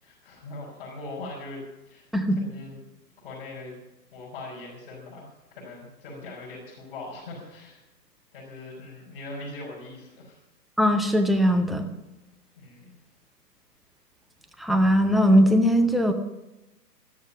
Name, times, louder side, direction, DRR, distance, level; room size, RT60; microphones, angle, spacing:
voice 1, 0.0-2.1 2.4-2.8 3.2-3.8 4.1-7.8 8.3-10.4 12.6-12.9, left 2 dB, 30° left, -6 dB, 5.7 m, -41 dB
voice 2, 10.8-11.9 14.6-16.1, equal, ahead, 4 dB, 0.4 m, -20 dB
13.5 x 13.5 x 5.8 m, 0.98 s
hypercardioid pair, 165°, 50 cm